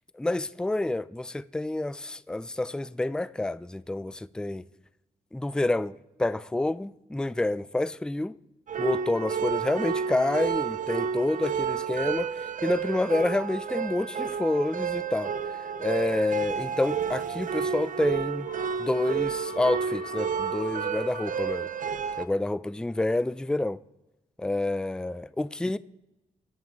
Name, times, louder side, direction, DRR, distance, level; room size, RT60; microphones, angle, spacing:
voice 1, 0.1-4.6 5.3-5.9 6.2-8.3 8.8-15.3 15.8-18.5 18.8-21.7 22.2-23.8 24.4-25.8, left 2 dB, 5° left, 0.4 m, -28 dB
sound 1, 8.7-22.2, right 7 dB, 60° right, 0.7 m, -31 dB
sound 2, 18.5-22.2 22.5-22.6, left 11 dB, 80° left, 0.6 m, -44 dB
14.5 x 9.2 x 3.7 m
supercardioid pair, 45°, 15 cm